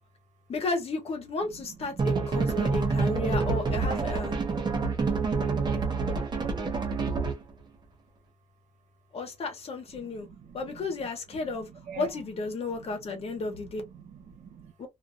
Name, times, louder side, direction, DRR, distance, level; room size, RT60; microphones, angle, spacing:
voice 1, 0.5-4.4 9.1-10.3 10.5-11.7 12.0-13.8 14.8-14.9, left 3 dB, 50° left, 1.0 m, -33 dB
sound 1, 2.0-7.5, right 4 dB, 35° right, 0.7 m, -27 dB
voice 2, 4.5-5.2 10.2-10.6 11.9-12.1 13.1-13.2 13.9-14.7, right 8 dB, 70° right, 1.1 m, -45 dB
2.6 x 2.4 x 2.5 m
wide cardioid pair, 155°, 13 cm